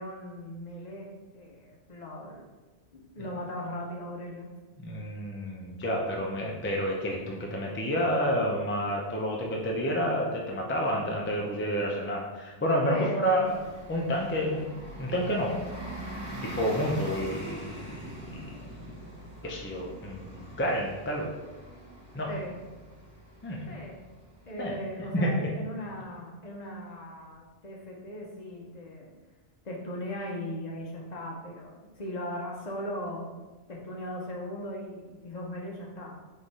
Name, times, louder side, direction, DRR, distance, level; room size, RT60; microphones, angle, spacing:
voice 1, 0.0-2.4 2.9-4.5 12.9-13.6 22.3-22.6 23.7-24.0 24.4-29.1 29.6-33.4 33.7-36.2, equal, 45° left, -2 dB, 0.8 m, -38 dB
voice 2, 4.8-13.0 13.2-13.4 13.9-14.7 15.0-15.6 16.4-19.1 19.4-21.3 22.1-22.3 23.4-23.8 24.6-24.8 25.1-25.3, equal, 20° left, -1 dB, 0.3 m, -30 dB
Bus, 13.3-25.6, right 1 dB, 20° right, 0.8 m, -44 dB
3.7 x 3.1 x 4.0 m, 1.2 s
omnidirectional pair, 1.1 m